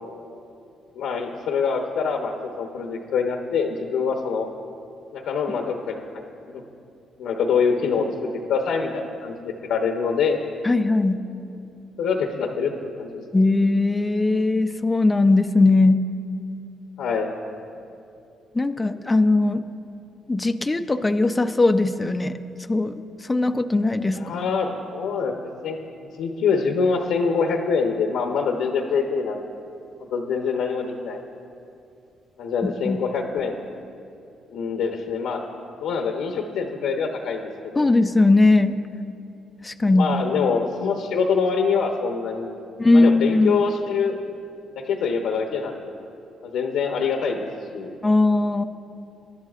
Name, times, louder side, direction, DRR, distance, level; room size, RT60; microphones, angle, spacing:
voice 1, 0.9-4.5 5.1-6.0 6.5-6.6 7.2-8.1 8.5-10.4 12.0-13.2 17.0-17.3 24.1-25.3 25.6-29.4 30.0-31.2 32.4-33.6 34.5-35.4 35.8-37.4 37.7-37.9 39.9-42.5 42.9-44.2 44.8-45.9 46.4-47.4 47.7-47.9, left 5 dB, 85° left, 2 dB, 0.9 m, -25 dB
voice 2, 10.6-11.2 13.3-16.0 18.5-19.6 20.3-22.4 22.7-24.2 32.6-33.0 37.8-38.7 39.6-40.2 42.8-43.6 48.0-48.6, left 2 dB, 20° left, 7 dB, 0.5 m, -19 dB
22.5 x 11.0 x 2.5 m, 2.6 s
cardioid pair, 90°, 0 cm